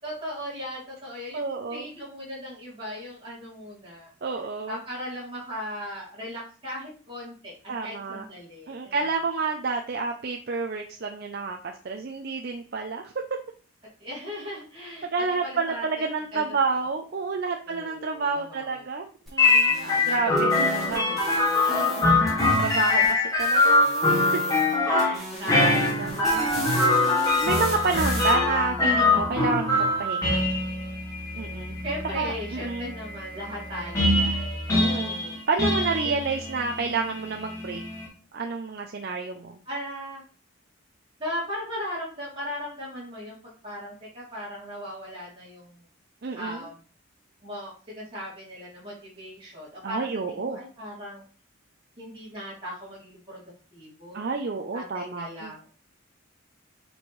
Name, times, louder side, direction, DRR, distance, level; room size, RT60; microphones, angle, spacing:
voice 1, 0.0-4.1 4.7-7.5 7.8-9.0 14.0-15.1 15.4-15.9 16.3-16.4 16.7-16.8 17.7-18.8 19.8-21.5 25.4-26.2 31.8-35.4 36.0-36.1 39.6-40.2 41.2-45.8 46.3-46.8 47.4-50.1 50.3-51.2 52.0-53.4 53.7-54.2 54.7-55.7, equal, 25° right, -8 dB, 3.0 m, -38 dB
voice 2, 1.3-1.9 4.2-4.8 7.7-8.2 8.7-13.1 15.1-21.2 21.7-22.2 22.6-24.4 24.8-26.5 27.0-30.4 31.3-31.7 32.2-32.9 34.7-37.8 38.3-39.6 46.2-46.6 49.8-50.6 54.1-55.5, right 4 dB, 50° right, 3 dB, 0.5 m, -30 dB
sound 1, 19.3-23.1 23.4-24.7 25.0-28.3, equal, ahead, 2.4 m, -39 dB
sound 2, 19.4-38.1, left 2 dB, 15° left, 2.1 m, -24 dB
6.9 x 4.4 x 3.2 m, 0.39 s
head